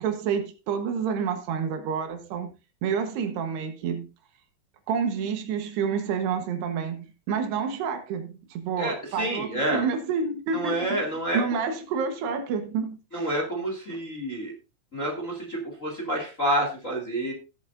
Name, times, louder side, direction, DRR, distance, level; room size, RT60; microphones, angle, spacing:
voice 1, 0.0-2.5 2.8-4.1 4.9-11.0 11.3-13.3 13.9-14.0, right 6 dB, 75° right, 3.3 m, -29 dB
voice 2, 8.8-9.8 10.5-11.4 13.1-14.5 14.9-17.3, right 1 dB, 25° left, 1.8 m, -28 dB
16.0 x 8.2 x 2.6 m
omnidirectional pair, 4.9 m